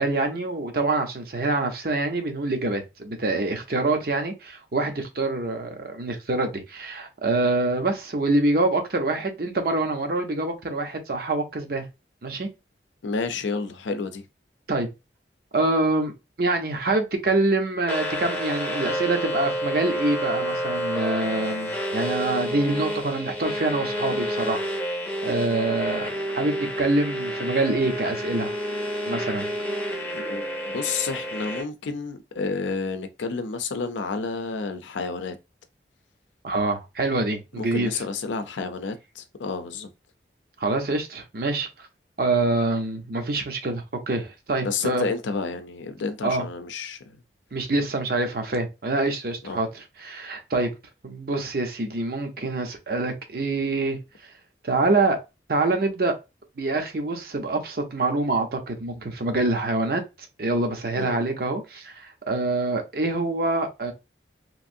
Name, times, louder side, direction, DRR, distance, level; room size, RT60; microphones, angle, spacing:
voice 1, 0.0-11.9 12.2-12.5 14.7-14.9 15.5-16.1 16.4-28.5 29.1-29.5 36.4-37.9 40.6-41.7 42.2-45.1 46.2-46.5 47.5-49.7 50.0-50.7 51.0-54.0 54.6-55.2 55.5-56.1 56.6-60.0 60.4-63.9, right 2 dB, 55° right, 0.6 m, -25 dB
voice 2, 13.0-14.2 30.1-35.4 37.6-39.9 44.6-47.2 49.4-49.6 60.9-61.2, left 4 dB, 85° left, 0.5 m, -30 dB
sound 1, 17.9-31.6, equal, 10° left, 0.6 m, -29 dB
3.0 x 2.6 x 2.5 m
head